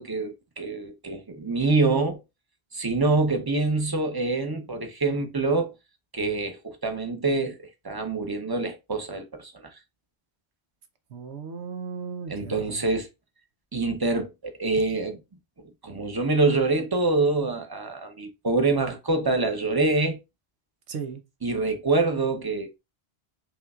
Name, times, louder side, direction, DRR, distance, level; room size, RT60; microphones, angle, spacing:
voice 1, 0.0-2.2 2.7-5.7 6.1-7.6 7.8-9.7 12.3-13.1 13.7-15.2 15.6-20.2 21.4-22.8, right 3 dB, 25° right, 0.7 m, -25 dB
voice 2, 11.1-12.8 20.9-21.2, right 6 dB, 85° right, 1.1 m, -36 dB
5.4 x 3.1 x 2.3 m
omnidirectional pair, 1.1 m